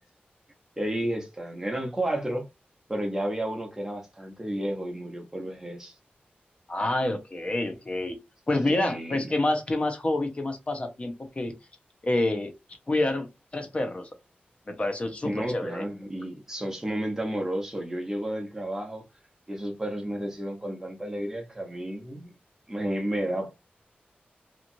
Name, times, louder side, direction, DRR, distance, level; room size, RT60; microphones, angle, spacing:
voice 1, 0.8-2.5 2.9-5.9 8.7-9.3 15.2-19.0 19.5-22.3 22.7-23.5, right 1 dB, 10° right, 1.0 m, -32 dB
voice 2, 6.7-8.2 8.5-11.5 12.0-12.5 12.9-13.3 13.5-14.1 14.7-15.9, left 2 dB, 35° left, 0.7 m, -27 dB
2.9 x 2.4 x 2.6 m
wide cardioid pair, 110°, 4 cm